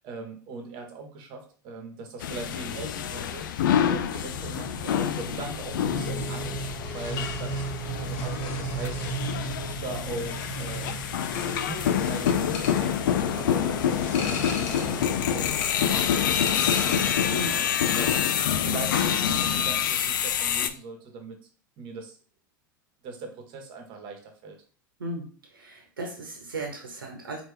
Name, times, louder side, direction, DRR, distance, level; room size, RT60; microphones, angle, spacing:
voice 1, 0.0-6.7 6.9-9.0 9.3-11.0 11.7-15.5 15.8-18.1 18.6-21.4 21.8-22.2 23.0-24.6, right 3 dB, 45° right, 3 dB, 1.2 m, -40 dB
sound 1, 2.2-20.7, left 9 dB, 70° left, 0.4 m, -27 dB
sound 2, 4.1-19.0, right 4 dB, 20° right, 1.5 m, -38 dB
sound 3, 6.8-17.5 17.8-18.3, left 5 dB, 55° left, 1.1 m, -40 dB
voice 2, 25.0-27.4, right 2 dB, 85° right, 1 dB, 1.0 m, -36 dB
4.3 x 2.9 x 3.3 m, 0.42 s
hypercardioid pair, 90°, 11 cm